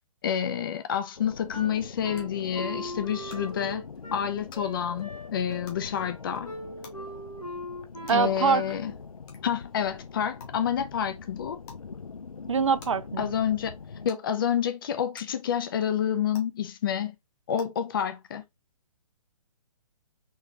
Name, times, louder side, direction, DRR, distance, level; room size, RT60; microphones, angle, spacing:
voice 1, 0.2-3.8 4.1-6.5 8.1-8.9 9.4-11.6 13.2-13.7 14.0-17.1 17.5-18.4, left 9 dB, 40° left, 0.8 m, -28 dB
sound 1, 0.9-1.0 2.1-2.2 3.3-3.4 4.5-4.6 5.6-5.8 6.8-6.9 8.0-8.1 9.3-9.4 10.4-10.5 11.6-11.8 12.8-12.9 14.1-14.2 15.1-15.2 16.3-16.4 17.5-17.6, left 6 dB, 20° left, 1.0 m, -47 dB
sound 2, 1.2-14.1, left 5 dB, 70° left, 0.7 m, -43 dB
Wind instrument woodwind instrument, 1.5-9.0, equal, 90° left, 2.0 m, -40 dB
voice 2, 8.1-8.6 12.5-13.3, right 6 dB, 55° right, 0.5 m, -24 dB
4.1 x 3.5 x 2.8 m
figure-of-eight pair, 130°, 19 cm